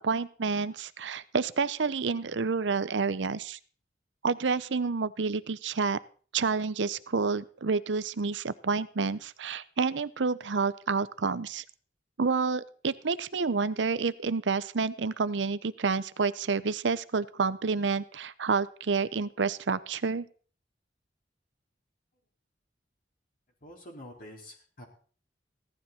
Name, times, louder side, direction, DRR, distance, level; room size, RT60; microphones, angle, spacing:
voice 1, 0.0-3.6 4.2-6.0 6.3-11.6 12.2-20.3, right 4 dB, 80° right, 16 dB, 0.7 m, -29 dB
voice 2, 23.6-24.8, left 1 dB, 50° left, 0 dB, 4.3 m, -47 dB
16.0 x 12.0 x 4.3 m, 0.42 s
head